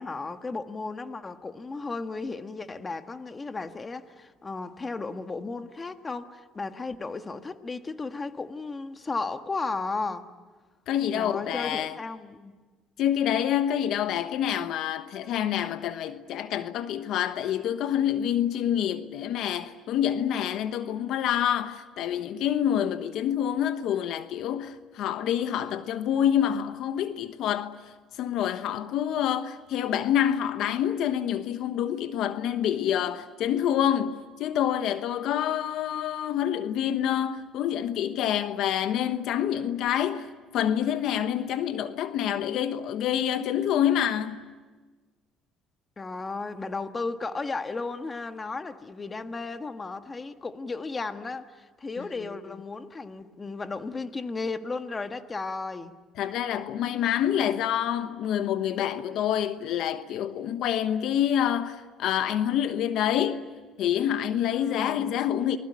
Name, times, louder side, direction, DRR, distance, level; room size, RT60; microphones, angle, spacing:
voice 1, 0.0-10.3 11.1-12.5 46.0-56.0 64.5-65.3, left 3 dB, 25° left, 1.5 m, -34 dB
voice 2, 10.9-12.0 13.0-27.9 28.2-44.4 52.0-52.1 56.2-65.6, left 10 dB, 70° left, 1.1 m, -27 dB
29.0 x 20.5 x 9.8 m
cardioid pair, 95°, 0 cm